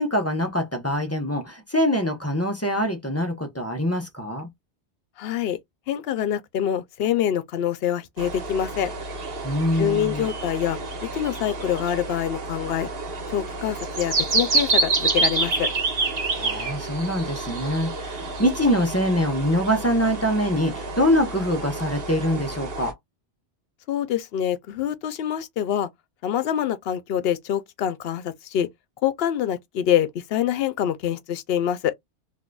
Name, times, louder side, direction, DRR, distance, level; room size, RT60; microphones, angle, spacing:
voice 1, 0.0-4.5 9.4-10.3 16.3-22.9, equal, 15° left, 0.7 m, -24 dB
voice 2, 5.2-5.6 5.9-8.9 9.8-12.9 13.3-15.7 23.9-25.9 26.2-28.7 29.0-31.9, left 10 dB, 65° left, 0.7 m, -25 dB
sound 1, 8.2-22.9, right 3 dB, 60° right, 1.2 m, -28 dB
3.7 x 2.6 x 2.3 m
omnidirectional pair, 1.2 m